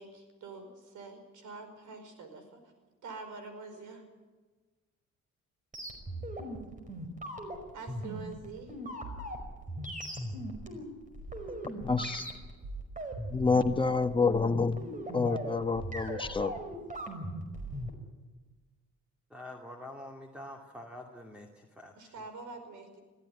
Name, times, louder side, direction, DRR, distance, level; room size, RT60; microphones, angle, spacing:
voice 1, 0.0-2.7 3.0-4.0 7.7-8.7 21.9-23.0, right 4 dB, 80° right, 7 dB, 5.1 m, -46 dB
sound 1, 5.7-17.9, right 1 dB, 25° right, 5.3 m, -39 dB
voice 2, 11.8-12.2 13.3-14.8 15.1-16.5, left 4 dB, 15° left, 8 dB, 1.2 m, -28 dB
voice 3, 19.3-22.1, left 1 dB, 5° right, 1 dB, 2.6 m, -46 dB
22.0 x 15.5 x 9.6 m, 1.3 s
cardioid pair, 90°, 30 cm